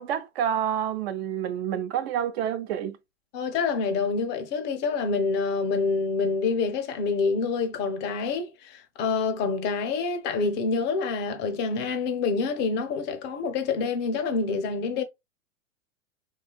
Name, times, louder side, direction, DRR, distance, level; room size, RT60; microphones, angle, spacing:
voice 1, 0.0-3.0, right 9 dB, 55° right, 0.6 m, -28 dB
voice 2, 3.3-15.0, left 4 dB, 30° left, 0.5 m, -27 dB
2.7 x 2.3 x 2.2 m
hypercardioid pair, 110°, 39 cm